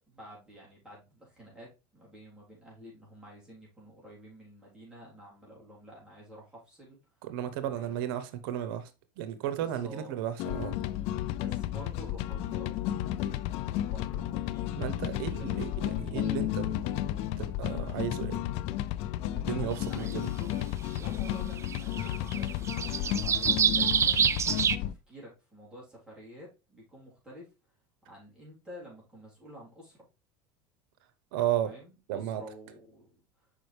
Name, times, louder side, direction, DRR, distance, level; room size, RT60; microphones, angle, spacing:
voice 1, 0.1-7.0 7.6-8.0 9.5-10.1 11.3-13.4 13.8-15.6 19.4-24.3 24.8-27.5 28.1-30.0 31.6-33.2, equal, 5° right, 3.6 m, -50 dB
voice 2, 7.2-8.9 9.2-10.8 14.8-18.4 19.3-20.3 31.3-31.7 32.1-32.4, right 11 dB, 80° right, 0.9 m, -34 dB
sound 1, 10.4-24.9, left 13 dB, 60° left, 0.4 m, -33 dB
sound 2, 20.1-20.2 21.2-21.3 21.6-24.8, right 7 dB, 25° right, 0.4 m, -26 dB
6.1 x 5.1 x 3.3 m
supercardioid pair, 115°, 12 cm